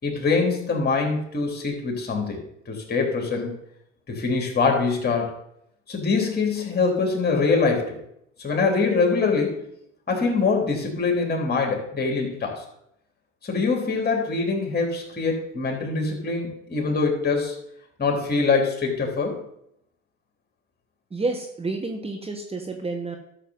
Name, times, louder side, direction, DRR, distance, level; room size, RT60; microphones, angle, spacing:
voice 1, 0.0-2.4 2.7-3.5 4.1-5.3 5.9-8.0 8.4-9.6 10.1-12.6 13.4-17.6 18.0-19.4, left 4 dB, 30° left, 1 dB, 3.5 m, -24 dB
voice 2, 21.1-23.2, right 3 dB, 20° right, 3 dB, 1.4 m, -29 dB
12.5 x 6.8 x 4.0 m, 0.77 s
hypercardioid pair, 70°, 32 cm